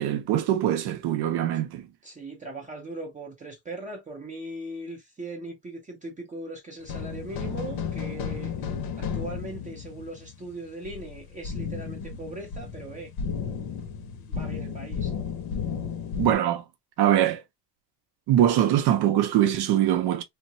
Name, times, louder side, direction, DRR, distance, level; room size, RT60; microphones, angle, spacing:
voice 1, 0.0-1.9 16.2-16.6 17.0-17.4 18.3-20.2, right 11 dB, 70° right, 0.7 m, -22 dB
voice 2, 2.0-8.5 9.0-13.1 14.3-15.1, right 2 dB, 20° right, 0.5 m, -39 dB
sound 1, 6.9-16.4, left 6 dB, 60° left, 0.7 m, -33 dB
3.2 x 2.1 x 2.6 m
cardioid pair, 175°, 42 cm